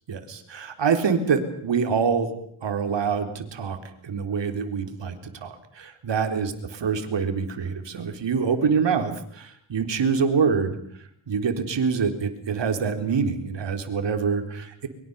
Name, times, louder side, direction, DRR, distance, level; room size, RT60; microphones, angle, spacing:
voice 1, 0.1-2.3 2.6-3.8 4.0-5.2 5.4-10.8 11.3-14.9, right 6 dB, 65° right, 7 dB, 4.0 m, -25 dB
23.5 x 23.5 x 7.1 m, 0.66 s
supercardioid pair, 55°, 47 cm